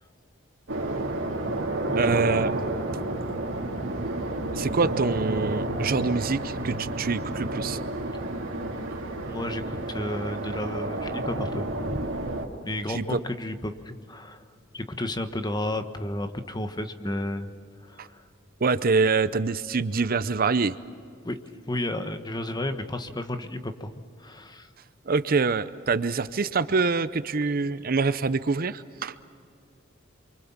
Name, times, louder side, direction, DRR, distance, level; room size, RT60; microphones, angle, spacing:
sound 1, 0.7-12.5, right 2 dB, 90° right, 2.8 m, -30 dB
voice 1, 2.0-2.5 4.5-7.8 12.9-13.2 18.0-18.1 18.6-20.7 25.1-29.1, right 4 dB, 50° right, 14 dB, 0.7 m, -25 dB
voice 2, 9.2-12.1 12.6-14.4 14.7-17.5 17.8-18.2 21.2-21.4 21.7-23.9 24.2-24.7, left 1 dB, 20° left, 8 dB, 1.3 m, -32 dB
28.0 x 24.5 x 7.3 m, 2.4 s
head